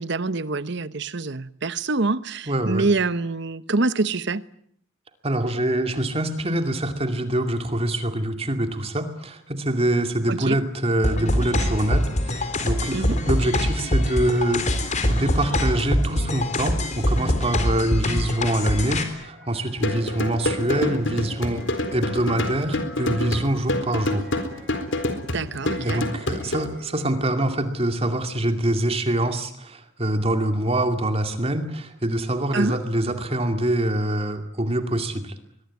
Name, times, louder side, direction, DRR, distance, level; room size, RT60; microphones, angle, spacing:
voice 1, 0.0-4.4 10.3-10.6 12.9-13.2 25.3-26.0 32.5-32.8, right 3 dB, 60° right, 1.0 m, -25 dB
voice 2, 2.5-2.9 5.2-14.7 15.1-24.3 25.8-35.3, right 1 dB, 30° right, 2.4 m, -25 dB
sound 1, 11.0-19.0, left 1 dB, 35° left, 3.9 m, -24 dB
sound 2, 11.6-27.8, equal, 5° left, 7.3 m, -48 dB
sound 3, 19.8-26.7, left 1 dB, 65° left, 4.1 m, -27 dB
23.0 x 22.5 x 9.6 m
head